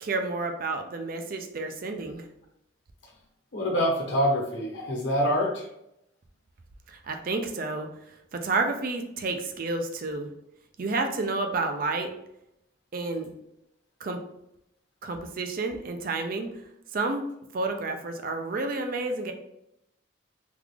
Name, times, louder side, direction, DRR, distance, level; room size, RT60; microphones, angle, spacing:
voice 1, 0.0-2.3 6.9-7.9 8.3-10.3 10.8-12.1 12.9-13.3 14.0-14.2 15.0-16.5 16.9-19.3, right 3 dB, 45° right, 5 dB, 0.4 m, -30 dB
voice 2, 3.5-5.7, equal, 65° left, -2 dB, 1.1 m, -25 dB
3.5 x 2.4 x 3.2 m, 0.80 s
head